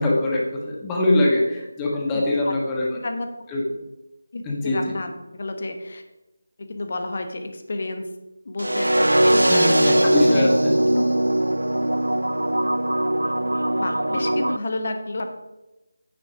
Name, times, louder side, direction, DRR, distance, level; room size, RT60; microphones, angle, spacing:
voice 1, 0.0-3.0 3.5-3.6 4.4-4.9 9.4-10.7, left 2 dB, 10° left, -3 dB, 1.3 m, -23 dB
voice 2, 2.1-2.5 3.0-3.3 4.3-6.0 6.7-8.1 8.4-10.5 10.9-11.1 13.8-15.3, left 2 dB, 45° left, 6 dB, 1.2 m, -31 dB
sound 1, 8.6-14.6, right 1 dB, 80° right, 0.4 m, -20 dB
9.0 x 6.7 x 5.0 m, 0.99 s
figure-of-eight pair, 160°, 0 cm